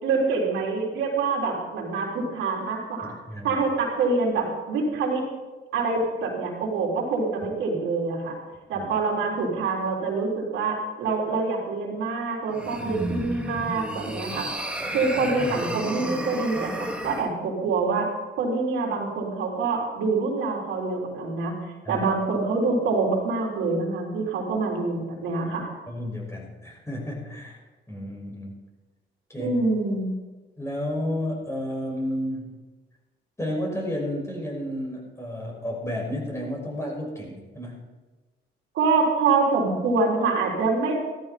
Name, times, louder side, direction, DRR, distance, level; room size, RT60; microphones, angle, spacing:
voice 1, 0.0-3.1 3.4-5.2 5.7-8.4 8.7-14.5 14.9-18.1 18.4-21.5 21.9-25.7 29.4-30.1 38.7-41.0, right 3 dB, 85° right, -2 dB, 4.0 m, -25 dB
voice 2, 3.0-3.6 8.7-8.9 15.0-15.1 21.8-22.0 25.9-27.6 27.9-28.5 29.3-29.6 30.6-32.5 33.4-37.8, left 1 dB, 15° left, -2 dB, 6.0 m, -32 dB
sound 1, 12.5-17.3, right 1 dB, 5° right, 2.0 m, -32 dB
15.0 x 14.0 x 4.3 m, 1.2 s
cardioid pair, 90°, 20 cm